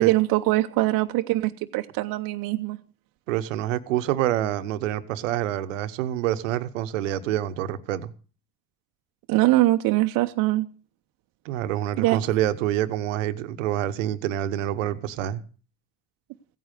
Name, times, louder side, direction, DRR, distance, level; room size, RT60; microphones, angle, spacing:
voice 1, 0.0-2.8 9.3-10.7 12.0-12.2, right 17 dB, 65° right, 0.9 m, -22 dB
voice 2, 3.3-8.1 11.4-15.4, right 12 dB, 85° right, 1.1 m, -27 dB
16.0 x 9.3 x 6.6 m
hypercardioid pair, 70°, 37 cm